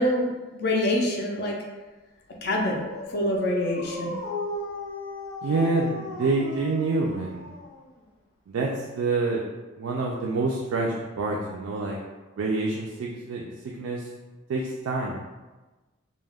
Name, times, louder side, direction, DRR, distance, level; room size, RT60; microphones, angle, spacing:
voice 1, 0.0-1.6 2.4-2.8 3.1-4.1, left 1 dB, 50° left, -1 dB, 0.4 m, -25 dB
Dog, 2.4-8.1, left 2 dB, 90° left, 0.7 m, -36 dB
voice 2, 5.4-7.5 8.5-9.4 9.8-12.0 12.4-14.1 14.5-15.2, right 3 dB, 80° right, -2 dB, 0.3 m, -27 dB
2.2 x 2.1 x 3.3 m, 1.2 s
head